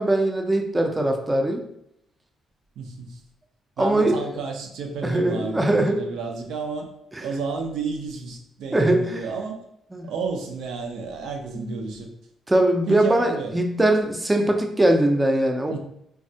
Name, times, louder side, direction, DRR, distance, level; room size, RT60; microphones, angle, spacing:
voice 1, 0.0-1.6 3.8-4.4 5.0-6.0 8.7-9.2 9.9-10.1 11.5-11.8 12.5-15.8, right 1 dB, 15° right, 3 dB, 0.4 m, -21 dB
voice 2, 2.8-3.2 3.8-6.9 7.2-9.6 10.0-12.1 12.9-13.6 15.7-15.8, right 4 dB, 80° right, 2 dB, 0.5 m, -31 dB
3.3 x 2.0 x 2.6 m, 0.74 s
cardioid pair, 90°, 0 cm